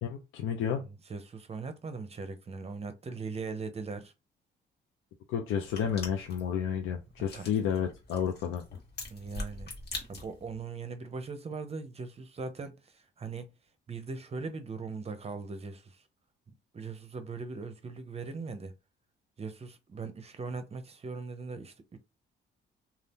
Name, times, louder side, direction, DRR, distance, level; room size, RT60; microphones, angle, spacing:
voice 1, 0.0-0.8 5.3-8.6, left 8 dB, 85° left, 0.6 m, -31 dB
voice 2, 0.8-4.1 7.2-7.5 9.1-9.7 10.1-13.5 13.9-16.1 16.7-18.7 19.4-22.0, right 4 dB, 30° right, 0.7 m, -40 dB
sound 1, 5.6-10.6, left 2 dB, 55° left, 1.4 m, -44 dB
2.7 x 2.4 x 3.4 m
cardioid pair, 90°, 20 cm